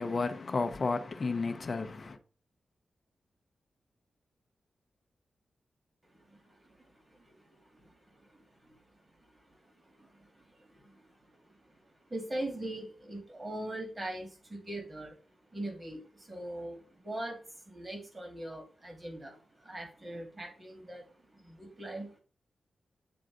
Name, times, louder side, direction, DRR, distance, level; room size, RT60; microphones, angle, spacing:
voice 1, 0.0-2.2, left 3 dB, 30° left, 0.6 m, -32 dB
voice 2, 6.1-22.2, right 1 dB, 20° right, 1.9 m, -43 dB
8.7 x 3.8 x 3.8 m
wide cardioid pair, 170°, 0 cm